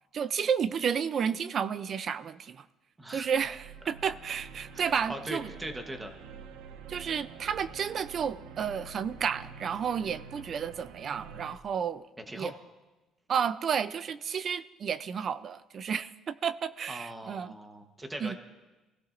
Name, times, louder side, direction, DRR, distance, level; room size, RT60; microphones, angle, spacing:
voice 1, 0.1-2.7 3.1-5.5 6.9-12.1 12.3-12.5 13.3-17.5 18.2-18.4, right 7 dB, 35° right, 15 dB, 0.5 m, -31 dB
sound 1, 3.2-11.6, right 6 dB, 85° right, 0.9 m, -47 dB
voice 2, 4.7-6.1 12.3-12.5 16.9-18.4, right 1 dB, 10° right, 5 dB, 1.1 m, -40 dB
27.5 x 16.5 x 2.6 m, 1.1 s
cardioid pair, 160°, 0 cm